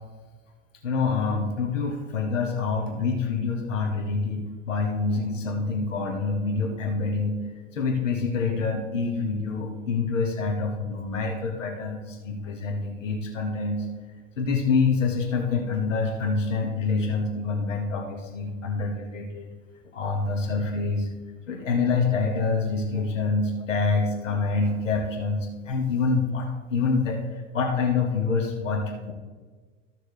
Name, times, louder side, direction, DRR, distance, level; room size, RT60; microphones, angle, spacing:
voice 1, 0.8-7.4 7.7-13.8 14.4-19.5 19.9-21.1 21.5-29.1, left 4 dB, 85° left, 1 dB, 1.6 m, -26 dB
13.5 x 6.3 x 3.2 m, 1.4 s
hypercardioid pair, 85°, 37 cm